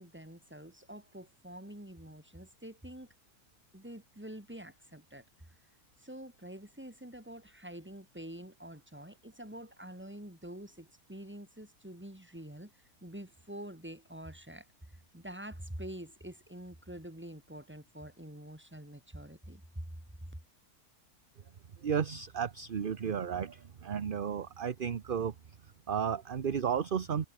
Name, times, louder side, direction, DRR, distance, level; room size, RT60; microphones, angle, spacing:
voice 1, 0.0-3.1 3.7-5.2 6.0-12.7 13.0-20.0 20.3-20.4, right 1 dB, 5° right, 3.2 m, -46 dB
voice 2, 21.8-25.3 25.9-27.3, right 7 dB, 40° right, 0.9 m, -33 dB
omnidirectional pair, 1.6 m